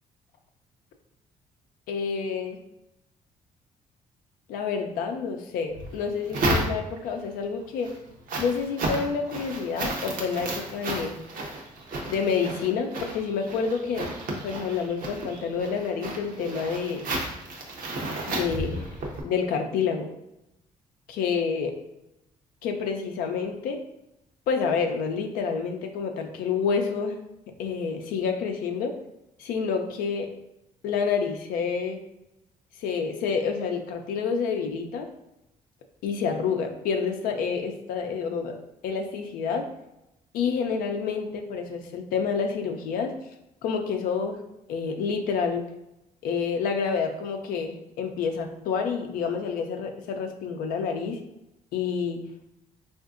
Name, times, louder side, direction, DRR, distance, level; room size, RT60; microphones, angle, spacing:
voice 1, 1.9-2.6 4.5-7.9 8.4-11.2 12.1-14.1 14.4-17.0 18.3-18.9 19.2-20.1 21.1-21.8 22.6-23.8 24.5-27.2 27.6-28.9 29.4-30.3 30.8-32.0 32.8-35.1 36.0-38.6 38.8-39.7 40.3-43.1 43.6-44.4 44.7-45.7 46.2-51.2 51.7-52.2, left 5 dB, 85° left, 4 dB, 0.4 m, -28 dB
sound 1, 5.7-7.2 7.6-19.2, right 1 dB, 70° right, 0.7 m, -32 dB
3.6 x 2.5 x 2.4 m, 0.88 s
cardioid pair, 90°, 14 cm